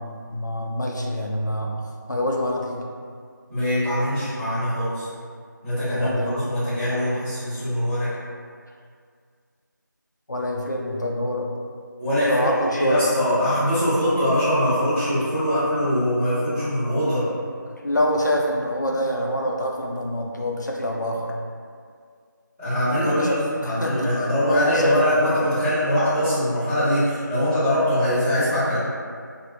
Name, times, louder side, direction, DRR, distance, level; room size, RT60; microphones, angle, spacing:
voice 1, 0.0-1.8 2.1-2.9 5.9-6.4 10.3-11.5 12.2-13.0 17.7-21.3 22.8-24.1 24.5-25.0 25.3-25.5, left 1 dB, 60° left, -1 dB, 0.4 m, -26 dB
voice 2, 3.5-5.1 5.6-8.1 12.0-17.2 22.6-28.8, equal, 20° right, -24 dB, 1.1 m, -22 dB
3.2 x 2.0 x 2.6 m, 2.1 s
figure-of-eight pair, 175°, 11 cm